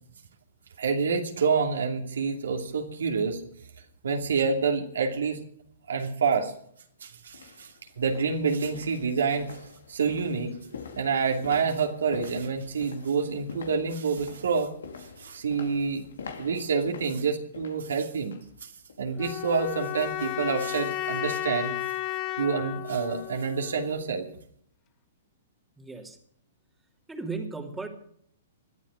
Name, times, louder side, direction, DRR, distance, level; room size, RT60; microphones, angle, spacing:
voice 1, 0.8-3.4 4.0-5.4 5.9-6.5 7.0-9.6 9.9-10.5 11.0-14.7 15.0-16.1 16.4-18.7 19.0-21.8 22.4-24.3, right 5 dB, 70° right, 3 dB, 2.6 m, -27 dB
sound 1, 6.6-6.7 7.3-18.5 18.9-19.1 19.6-19.7, left 5 dB, 70° left, 2.5 m, -46 dB
sound 2, 19.2-24.2, left 14 dB, 30° left, 0.9 m, -34 dB
voice 2, 25.8-26.2 27.1-27.9, right 3 dB, 5° right, 2 dB, 2.8 m, -35 dB
21.0 x 12.5 x 4.9 m, 0.64 s
figure-of-eight pair, 115°, 0 cm